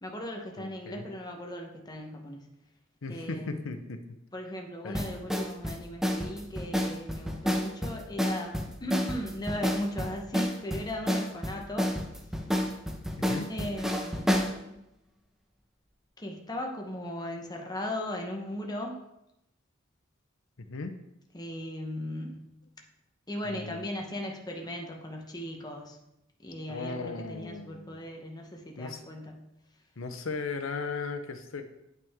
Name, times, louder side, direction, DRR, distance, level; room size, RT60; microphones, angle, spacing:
voice 1, 0.0-2.5 3.1-3.7 4.3-11.9 13.5-14.3 16.2-19.0 21.3-22.4 23.3-26.0 26.4-29.4, left 1 dB, 20° left, 1 dB, 1.0 m, -37 dB
voice 2, 0.6-1.1 3.0-4.0 4.8-5.0 13.3-13.5 20.6-20.9 23.4-23.9 26.7-28.0 28.8-29.0 30.0-31.6, left 4 dB, 80° left, 7 dB, 0.8 m, -37 dB
sound 1, 4.9-14.5, equal, ahead, 0.8 m, -30 dB
9.2 x 5.8 x 3.6 m, 0.86 s
head